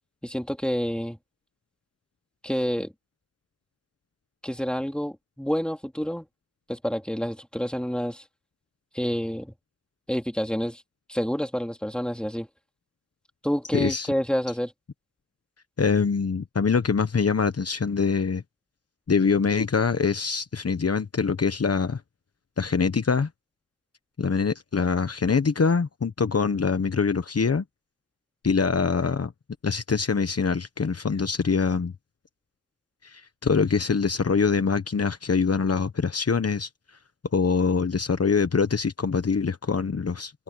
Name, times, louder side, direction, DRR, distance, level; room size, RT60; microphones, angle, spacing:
voice 1, 0.2-1.2 2.4-2.9 4.4-6.3 6.7-8.2 8.9-9.5 10.1-10.8 11.1-12.5 13.4-14.7, equal, 5° left, 3.5 m, -28 dB
voice 2, 13.7-14.1 15.8-18.4 19.1-22.0 22.6-23.3 24.2-27.6 28.4-29.3 29.6-31.9 33.0-36.7 37.3-40.3, left 5 dB, 55° left, 1.2 m, -24 dB
cardioid pair, 40°, 30 cm